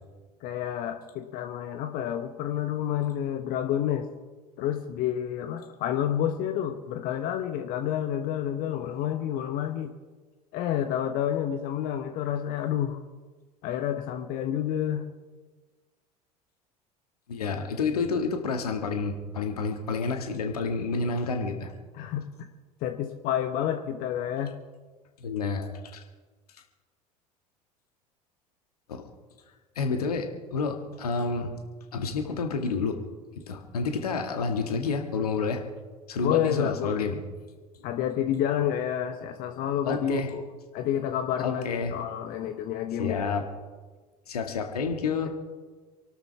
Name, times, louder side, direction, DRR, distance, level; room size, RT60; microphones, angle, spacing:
voice 1, 0.4-4.1 4.6-9.9 10.5-13.0 13.6-15.1 21.9-22.3 22.8-24.5 36.2-37.1 37.8-40.4 40.7-43.4, left 10 dB, 45° left, 7 dB, 1.2 m, -29 dB
voice 2, 17.3-21.7 25.2-26.0 28.9-29.0 29.8-31.5 31.9-33.0 33.4-35.6 36.1-37.2 39.9-40.3 41.4-41.9 43.0-43.5 44.3-45.3, left 4 dB, 70° left, 4 dB, 1.9 m, -29 dB
28.0 x 12.5 x 3.4 m, 1.4 s
figure-of-eight pair, 70°, 20 cm